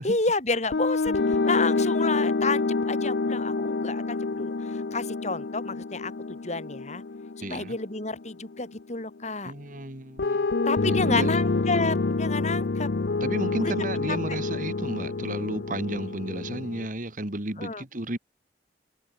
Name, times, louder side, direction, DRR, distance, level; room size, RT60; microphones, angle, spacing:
voice 1, 0.0-6.1 6.4-7.0 7.4-9.5 10.7-12.9 13.6-13.7 14.1-14.2 17.6-17.8, left 3 dB, 40° left, 3.6 m, -30 dB
sound 1, 0.7-8.8 10.2-16.9, left 3 dB, 65° left, 0.6 m, -27 dB
voice 2, 7.4-7.8 9.4-10.5 10.8-11.4 13.2-18.2, right 1 dB, 45° right, 2.7 m, -32 dB
head